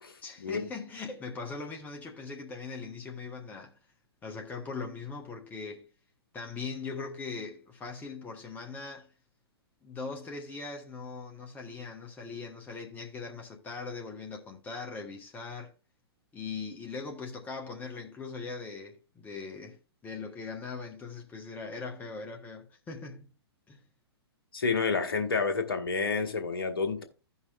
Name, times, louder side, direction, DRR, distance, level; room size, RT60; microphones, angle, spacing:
voice 1, 0.2-3.8 4.2-5.9 6.3-9.1 9.8-15.7 16.3-23.3 23.7-23.8, left 4 dB, 10° left, 0.9 m, -40 dB
voice 2, 24.5-27.0, left 4 dB, 60° left, 1.5 m, -29 dB
16.0 x 5.5 x 2.3 m
figure-of-eight pair, 115°, 13 cm